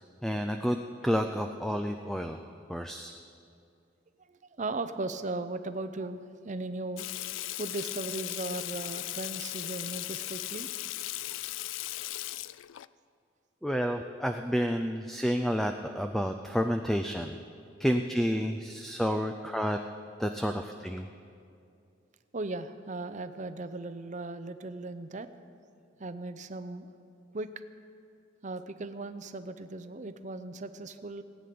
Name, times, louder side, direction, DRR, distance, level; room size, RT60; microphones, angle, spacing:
voice 1, 0.2-2.4 2.7-3.2 13.6-17.4 17.8-19.8 20.2-21.1, equal, ahead, 6 dB, 0.4 m, -30 dB
voice 2, 4.3-7.1 7.6-10.7 22.3-25.3 26.0-26.9 27.3-27.5 28.4-31.2, right 2 dB, 40° right, 11 dB, 0.6 m, -37 dB
Water tap faucet / Sink (filling or washing), 7.0-12.9, left 16 dB, 75° left, 0.3 m, -37 dB
17.5 x 9.5 x 6.8 m, 2.5 s
head